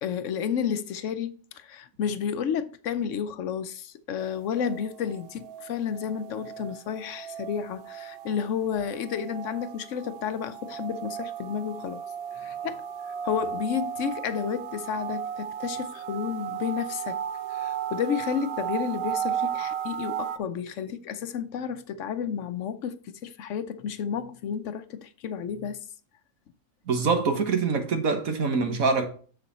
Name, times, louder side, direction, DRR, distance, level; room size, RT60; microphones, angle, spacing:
voice 1, 0.0-12.0 12.3-12.8 13.2-17.2 17.5-25.8, left 7 dB, 65° left, 1.0 m, -31 dB
sound 1, 4.2-20.4, right 9 dB, 60° right, 0.7 m, -35 dB
voice 2, 26.9-29.1, right 4 dB, 85° right, 1.9 m, -24 dB
7.0 x 6.6 x 4.1 m
omnidirectional pair, 1.4 m